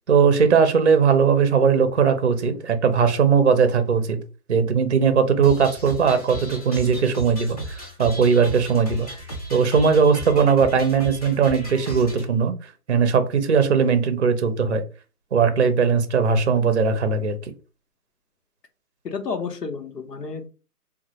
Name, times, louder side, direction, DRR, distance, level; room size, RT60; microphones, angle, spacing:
voice 1, 0.1-4.2 4.5-9.1 9.5-12.5 12.9-14.8 15.3-17.4, right 6 dB, 45° right, 9 dB, 0.6 m, -19 dB
sound 1, 5.4-12.3, right 1 dB, 25° left, 0.6 m, -35 dB
voice 2, 19.0-20.5, left 5 dB, 85° left, 5 dB, 1.0 m, -31 dB
3.1 x 2.3 x 2.9 m, 0.33 s
hypercardioid pair, 165°, 47 cm